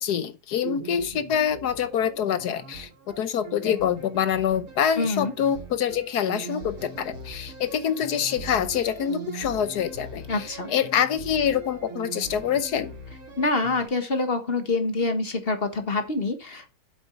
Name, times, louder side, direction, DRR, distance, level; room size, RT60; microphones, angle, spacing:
voice 1, 0.0-2.9 3.2-12.9, left 8 dB, 60° left, 1.2 m, -26 dB
sound 1, 0.6-13.9, right 5 dB, 80° right, 3.7 m, -41 dB
voice 2, 5.0-5.3 10.3-10.7 13.4-16.8, left 3 dB, 30° left, 1.4 m, -26 dB
8.0 x 7.3 x 4.4 m
omnidirectional pair, 2.3 m